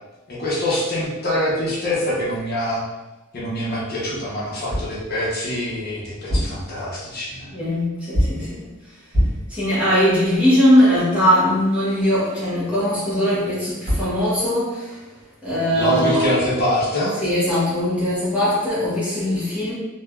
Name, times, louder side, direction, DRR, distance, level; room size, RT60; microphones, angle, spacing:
voice 1, 0.3-2.8 3.3-7.5 8.3-8.5 15.7-17.2, left 1 dB, 50° left, -7 dB, 0.7 m, -24 dB
sound 1, 4.7-5.0 6.1-6.7 8.1-8.5 9.1-9.5 13.6-13.7 13.9-14.2, equal, 30° left, 1.5 m, -22 dB
voice 2, 7.5-8.7 9.5-15.0 15.4-16.4 17.2-19.7, equal, 5° right, -10 dB, 0.8 m, -20 dB
3.2 x 2.2 x 2.2 m, 1.1 s
head